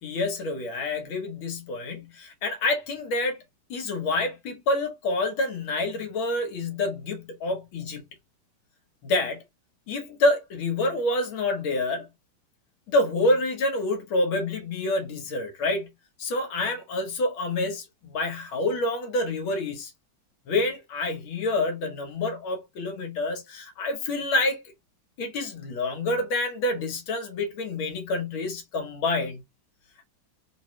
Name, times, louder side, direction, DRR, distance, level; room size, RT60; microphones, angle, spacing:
voice 1, 0.0-3.4 3.7-8.0 9.0-9.4 9.9-12.1 12.9-15.9 16.2-19.9 20.5-24.6 25.2-29.4, left 2 dB, 85° left, 1.9 m, -27 dB
3.7 x 2.9 x 3.0 m
omnidirectional pair, 2.2 m